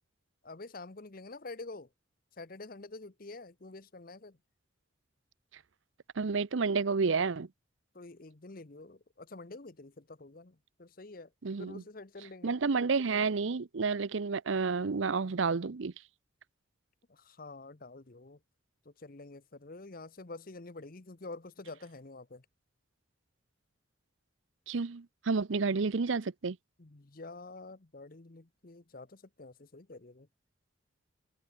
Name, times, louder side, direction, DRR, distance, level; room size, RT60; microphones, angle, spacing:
voice 1, 0.4-1.9 2.4-4.4 7.9-11.3 11.6-12.5 17.1-18.4 18.8-22.4 26.8-30.3, left 3 dB, 45° left, 0.9 m, -47 dB
voice 2, 6.2-7.5 11.4-11.8 12.4-15.9 24.7-26.6, right 4 dB, 75° right, 0.6 m, -30 dB
head